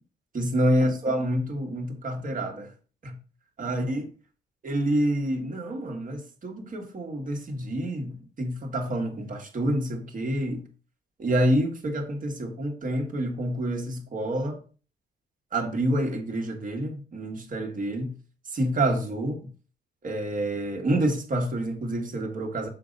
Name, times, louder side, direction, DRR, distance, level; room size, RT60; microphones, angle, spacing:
voice 1, 0.3-2.7 3.0-3.2 3.6-4.1 4.6-10.7 11.2-14.6 15.5-18.2 18.5-19.5 20.0-22.7, right 1 dB, 40° right, 1.7 m, -28 dB
6.7 x 3.8 x 5.3 m
cardioid pair, 90°, 20 cm